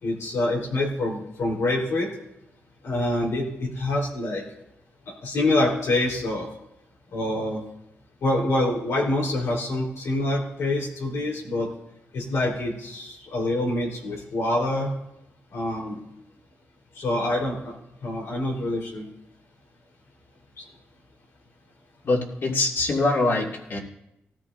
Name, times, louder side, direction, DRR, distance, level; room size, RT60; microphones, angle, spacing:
voice 1, 0.0-2.1 2.8-4.4 5.2-6.5 7.1-7.6 8.2-11.7 12.1-14.9 15.5-16.0 17.0-17.7 18.0-19.0, left 1 dB, 90° left, -2 dB, 4.0 m, -26 dB
voice 2, 22.0-23.8, left 2 dB, 55° left, -1 dB, 2.5 m, -23 dB
19.0 x 13.5 x 2.7 m, 0.85 s
wide cardioid pair, 115°, 5 cm